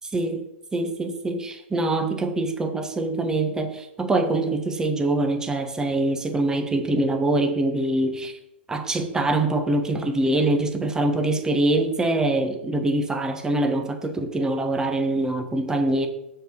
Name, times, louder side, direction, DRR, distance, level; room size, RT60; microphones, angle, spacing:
voice 1, 0.1-0.4 0.7-8.3 8.7-16.1, right 2 dB, 10° right, 6 dB, 1.3 m, -24 dB
8.1 x 6.3 x 6.9 m, 0.84 s
figure-of-eight pair, 100°, 7 cm